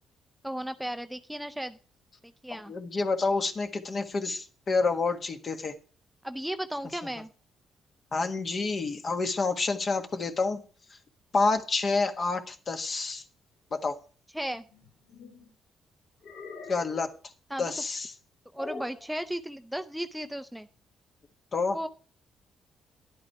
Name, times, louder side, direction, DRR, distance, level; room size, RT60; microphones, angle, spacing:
voice 1, 0.4-1.8 2.4-2.7 6.2-7.3 14.3-14.6 17.5-17.6 18.5-20.7 21.7-21.9, right 1 dB, 5° right, 9 dB, 0.5 m, -35 dB
voice 2, 2.7-5.7 8.1-10.6 11.3-13.2 13.7-14.0 16.7-17.1 17.6-18.1 21.5-21.8, left 3 dB, 45° left, 6 dB, 1.5 m, -28 dB
sound 1, 14.7-15.5 16.2-17.1 18.6-19.1, left 4 dB, 60° left, 2.5 m, -43 dB
11.0 x 8.5 x 4.6 m, 0.38 s
cardioid pair, 90°, 0 cm